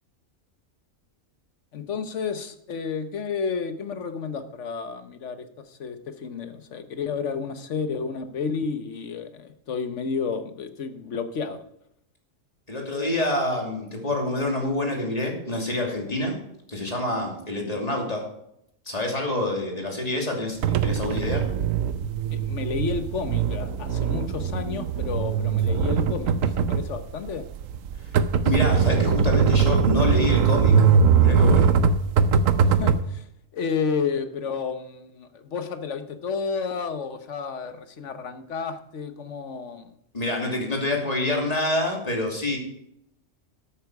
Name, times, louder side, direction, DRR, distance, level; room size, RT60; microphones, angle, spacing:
voice 1, 1.7-11.6 22.3-27.4 32.7-33.3 33.5-39.9, left 5 dB, 65° left, 9 dB, 1.4 m, -31 dB
voice 2, 12.7-16.4 16.7-18.3 18.9-21.5 28.4-30.8 31.2-31.8 40.1-42.6, left 1 dB, 30° left, 0 dB, 2.8 m, -27 dB
sound 1, 20.6-33.0, right 6 dB, 90° right, 1.1 m, -21 dB
12.0 x 8.8 x 4.8 m, 0.76 s
omnidirectional pair, 1.3 m